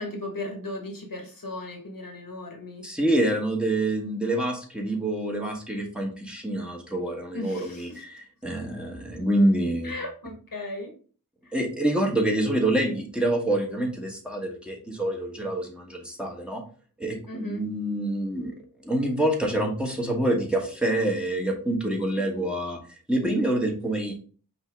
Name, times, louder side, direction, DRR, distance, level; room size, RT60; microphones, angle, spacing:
voice 1, 0.0-2.8 7.3-8.0 9.8-10.9 11.4-11.5 17.3-17.6 22.1-22.2, left 2 dB, 70° left, 2 dB, 1.2 m, -36 dB
voice 2, 2.8-9.9 11.5-16.6 17.0-18.5 18.8-22.8 23.1-24.1, right 1 dB, 5° right, 0 dB, 1.2 m, -26 dB
5.3 x 2.8 x 3.4 m, 0.40 s
wide cardioid pair, 55°, 35 cm